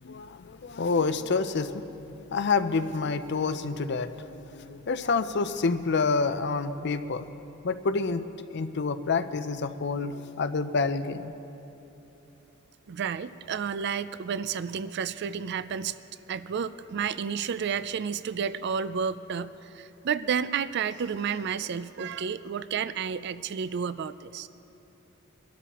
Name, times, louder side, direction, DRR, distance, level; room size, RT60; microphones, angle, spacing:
voice 1, 0.0-7.3 7.6-8.2 8.5-11.3, left 4 dB, 55° left, 11 dB, 0.6 m, -28 dB
voice 2, 12.9-16.0 16.3-24.5, right 7 dB, 55° right, 14 dB, 0.4 m, -31 dB
25.0 x 12.5 x 3.0 m, 3.0 s
head